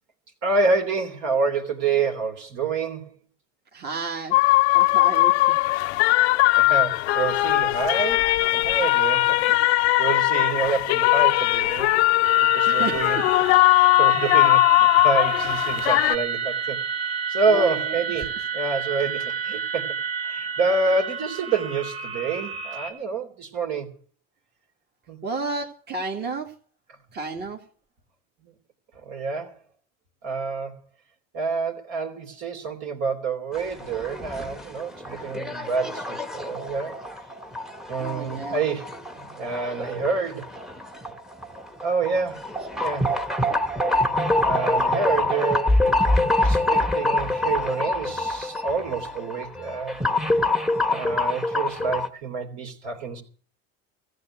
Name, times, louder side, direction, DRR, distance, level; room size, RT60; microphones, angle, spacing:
voice 1, 0.4-3.1 6.2-11.9 12.5-13.5 13.8-16.8 17.3-19.9 20.2-23.9 25.1-25.2 29.0-29.6 30.2-30.7 31.3-37.0 37.9-40.5 41.8-43.1 44.4-45.8 46.4-50.0 50.9-53.2, right 4 dB, 60° right, 3.3 m, -28 dB
voice 2, 3.7-4.4 4.7-5.4 12.7-13.3 17.5-18.0 25.2-26.5 27.1-27.6 38.0-38.6, right 4 dB, 30° right, 2.3 m, -31 dB
sound 1, 4.3-16.2, left 19 dB, 90° left, 0.6 m, -19 dB
sound 2, 12.2-22.9, right 6 dB, 90° right, 3.7 m, -30 dB
sound 3, 33.5-52.1, left 2 dB, ahead, 1.1 m, -25 dB
14.5 x 8.1 x 7.8 m
supercardioid pair, 110°, 32 cm